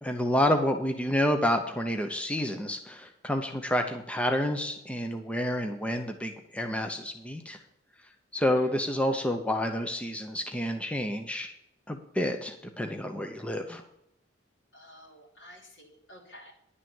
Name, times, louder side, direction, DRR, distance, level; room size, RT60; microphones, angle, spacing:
voice 1, 0.0-7.6 8.3-11.5 11.9-13.8, left 1 dB, 5° left, 5 dB, 0.7 m, -29 dB
voice 2, 8.4-8.8 14.7-16.5, equal, 85° left, -4 dB, 3.0 m, -51 dB
11.0 x 6.2 x 7.1 m, 0.77 s
head